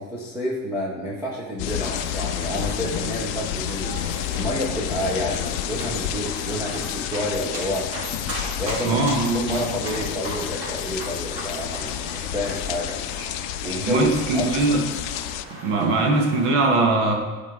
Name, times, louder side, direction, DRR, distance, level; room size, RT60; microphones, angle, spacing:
voice 1, 0.0-7.9 8.6-9.0 9.3-13.0 13.6-14.5, equal, 5° right, -5 dB, 0.7 m, -29 dB
sound 1, 1.6-15.4, left 12 dB, 70° left, 0.5 m, -30 dB
sound 2, 1.7-16.5, right 1 dB, 35° right, 2.6 m, -37 dB
voice 2, 8.8-9.7 13.9-14.8 15.6-17.1, right 2 dB, 65° right, 2 dB, 1.6 m, -21 dB
12.0 x 4.8 x 3.7 m, 1.4 s
cardioid pair, 180°, 40 cm